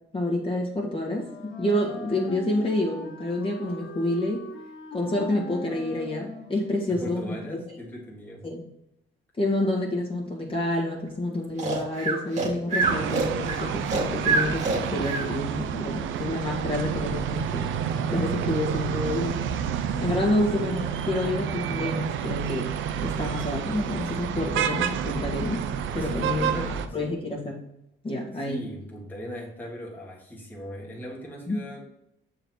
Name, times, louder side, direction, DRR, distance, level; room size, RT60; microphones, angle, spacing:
voice 1, 0.1-4.4 4.9-7.4 8.4-8.6 9.4-14.7 14.9-17.7 18.1-19.4 20.0-22.7 23.0-25.6 25.9-27.6 28.0-28.6 31.5-31.6, left 1 dB, 25° left, -2 dB, 1.7 m, -28 dB
Wind instrument woodwind instrument, 1.1-7.0, left 1 dB, 75° left, 1.5 m, -41 dB
voice 2, 6.9-8.4 26.0-27.0 28.3-31.8, equal, 10° left, -4 dB, 1.7 m, -39 dB
Breathing, 11.6-15.3, right 3 dB, 35° right, 1.7 m, -26 dB
sound 1, 12.8-26.9, right 8 dB, 80° right, 0.6 m, -29 dB
6.6 x 4.0 x 4.5 m, 0.76 s
cardioid pair, 90°, 20 cm